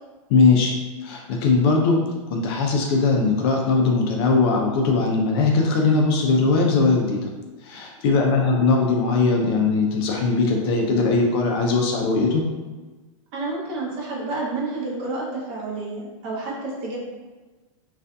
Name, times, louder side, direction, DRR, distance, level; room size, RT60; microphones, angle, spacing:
voice 1, 0.3-0.7 1.0-2.0 2.3-7.2 7.6-12.4, left 3 dB, 45° left, 0 dB, 0.5 m, -20 dB
voice 2, 8.0-8.4 13.3-17.0, right 2 dB, 40° right, -3 dB, 0.7 m, -30 dB
2.5 x 2.4 x 2.2 m, 1.2 s
hypercardioid pair, 140°, 17 cm